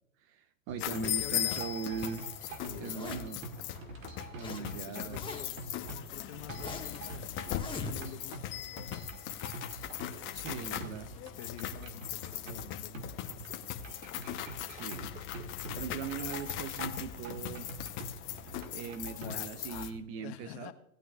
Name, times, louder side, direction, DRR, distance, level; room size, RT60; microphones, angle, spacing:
voice 1, 0.2-2.3 2.8-3.4 4.3-5.5 10.3-11.1 14.7-15.2 15.5-17.7 18.7-20.7, right 6 dB, 30° right, 0.7 m, -40 dB
sound 1, 0.7-20.0, right 3 dB, 70° right, 1.8 m, -46 dB
voice 2, 0.8-1.6 2.7-3.2 4.4-5.6 6.0-8.5 8.9-9.1 10.5-13.3 15.4-16.0 19.2-20.7, left 10 dB, 50° left, 1.2 m, -47 dB
sound 2, 0.8-19.9, left 12 dB, 30° left, 0.9 m, -39 dB
Zipper (clothing), 2.7-3.4 4.0-4.6 4.9-5.7 6.1-7.0 7.5-8.3, left 4 dB, 10° left, 1.6 m, -42 dB
18.0 x 9.0 x 2.4 m
hypercardioid pair, 115°, 42 cm